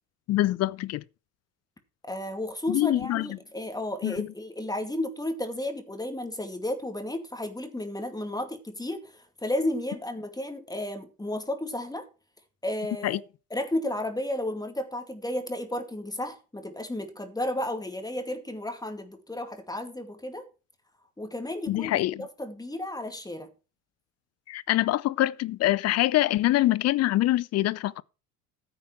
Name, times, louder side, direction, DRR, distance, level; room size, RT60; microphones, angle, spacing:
voice 1, 0.3-1.0 2.7-3.3 4.0-4.3 13.0-13.2 21.7-22.3 24.5-28.0, left 15 dB, 35° left, 0.6 m, -25 dB
voice 2, 2.1-12.1 12.6-13.2 13.5-20.4 21.2-23.5, left 1 dB, 10° left, 2.4 m, -33 dB
14.5 x 8.4 x 3.3 m
figure-of-eight pair, 65°, 45 cm